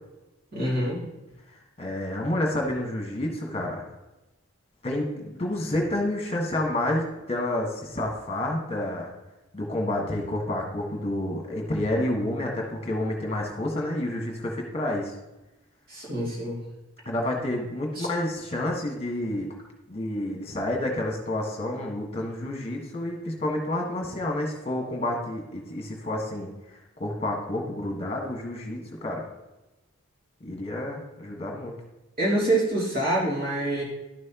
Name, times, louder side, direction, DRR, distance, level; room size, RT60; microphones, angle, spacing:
voice 1, 0.5-1.0 15.9-16.6 18.0-18.1 32.2-33.8, right 1 dB, 45° right, -5 dB, 2.8 m, -26 dB
voice 2, 1.8-3.9 4.8-9.1 9.5-15.1 17.0-19.5 19.9-26.5 27.0-29.3 30.4-31.8, left 1 dB, 30° left, 0 dB, 1.5 m, -29 dB
12.0 x 6.2 x 3.0 m, 1.0 s
head